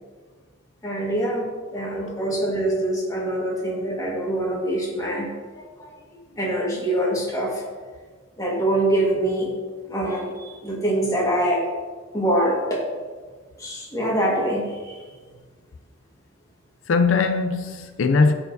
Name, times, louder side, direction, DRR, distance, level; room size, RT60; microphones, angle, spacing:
voice 1, 0.8-5.3 5.8-5.9 6.4-7.6 8.4-9.5 9.9-11.6 12.1-12.8 13.6-14.9, right 1 dB, 20° left, 1.6 m, -24 dB
voice 2, 1.8-2.3 16.9-18.3, left 4 dB, 85° left, 0.5 m, -21 dB
12.5 x 4.5 x 2.7 m
head